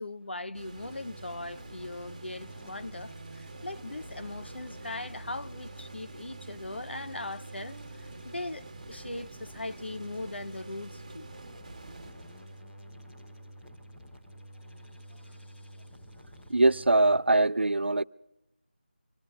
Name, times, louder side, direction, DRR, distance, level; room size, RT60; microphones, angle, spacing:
voice 1, 0.0-11.3 15.2-15.4, left 2 dB, 80° left, 0.8 m, -40 dB
sound 1, 0.5-12.6, right 3 dB, 25° right, 1.5 m, -47 dB
sound 2, 0.8-17.2, equal, ahead, 0.5 m, -49 dB
voice 2, 16.5-18.0, right 2 dB, 85° right, 0.5 m, -22 dB
25.5 x 20.0 x 2.2 m
figure-of-eight pair, 170°, 6 cm